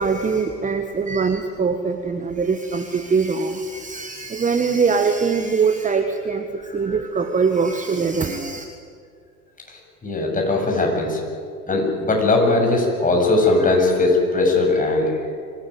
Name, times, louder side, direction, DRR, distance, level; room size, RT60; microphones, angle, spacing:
voice 1, 0.0-8.6, right 5 dB, 15° right, 7 dB, 1.4 m, -22 dB
voice 2, 10.0-11.2 11.7-15.1, left 2 dB, 15° left, 1 dB, 7.4 m, -19 dB
25.0 x 18.0 x 9.5 m, 2.2 s
figure-of-eight pair, 85°, 49 cm